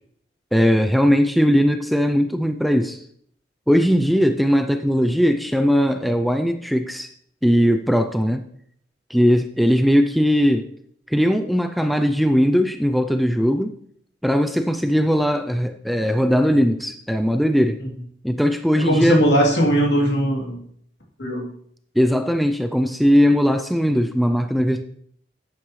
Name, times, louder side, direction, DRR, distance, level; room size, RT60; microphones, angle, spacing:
voice 1, 0.5-3.0 3.7-7.1 7.4-8.4 9.1-10.7 11.1-13.7 14.2-17.8 18.2-19.2 22.0-24.8, equal, ahead, 7 dB, 0.4 m, -19 dB
voice 2, 18.8-20.6 21.2-21.5, equal, 70° left, -2 dB, 2.9 m, -19 dB
11.5 x 8.9 x 3.2 m, 0.64 s
head